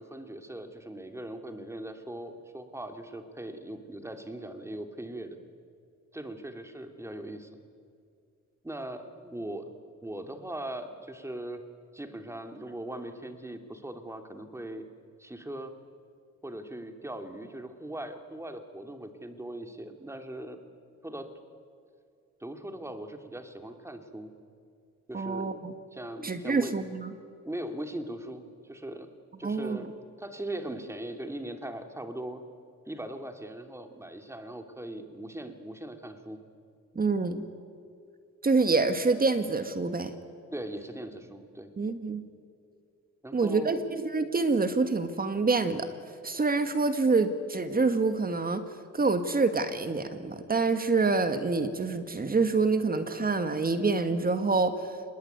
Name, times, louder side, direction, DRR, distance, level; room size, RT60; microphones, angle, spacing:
voice 1, 0.0-5.4 6.1-7.6 8.6-9.7 10.0-11.6 11.9-14.8 15.2-15.7 16.4-20.6 21.0-21.3 22.4-24.3 25.1-25.6 25.9-26.8 27.5-29.1 29.4-32.4 32.9-36.4 40.5-41.7 43.2-43.8, right 1 dB, 10° right, 6 dB, 2.8 m, -40 dB
voice 2, 25.1-25.7 26.2-27.1 29.4-29.9 37.0-37.5 38.4-40.2 41.8-42.2 43.3-45.9 46.2-48.6 48.9-55.1, right 3 dB, 30° right, 9 dB, 1.8 m, -27 dB
26.0 x 21.0 x 9.5 m, 2.4 s
cardioid pair, 90°, 30 cm